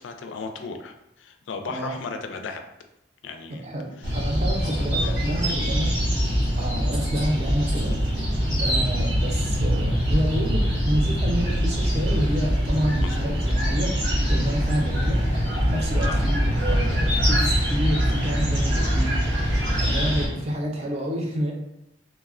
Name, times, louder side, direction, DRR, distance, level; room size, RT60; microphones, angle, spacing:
voice 1, 0.0-2.6 3.2-3.7 4.0-4.1 4.8-5.7 13.0-13.4 16.0-16.1 20.2-20.4, left 4 dB, 85° left, 6 dB, 0.3 m, -36 dB
voice 2, 3.5-6.0 6.6-8.0 8.6-13.9 14.3-15.2 15.7-21.5, equal, 35° right, 0 dB, 0.5 m, -29 dB
sound 1, 4.0-20.3, equal, 85° right, 1.1 m, -23 dB
3.1 x 2.1 x 2.3 m, 0.84 s
head